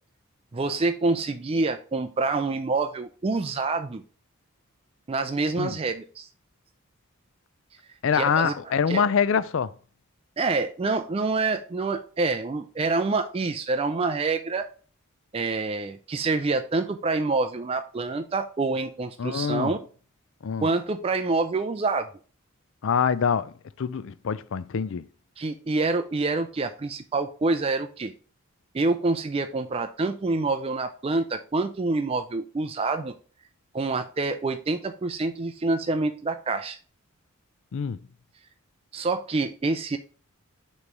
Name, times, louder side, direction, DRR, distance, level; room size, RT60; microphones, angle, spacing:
voice 1, 0.5-4.0 5.1-6.3 8.1-8.5 8.9-9.1 10.4-14.7 15.3-19.8 20.6-22.1 25.4-28.1 28.7-33.1 33.7-36.8 38.9-40.0, right 3 dB, 25° right, 0.3 m, -27 dB
voice 2, 8.0-9.7 19.2-19.7 20.4-20.7 22.8-23.5 23.8-25.0 37.7-38.0, left 6 dB, 60° left, 0.4 m, -25 dB
6.7 x 3.1 x 5.2 m
head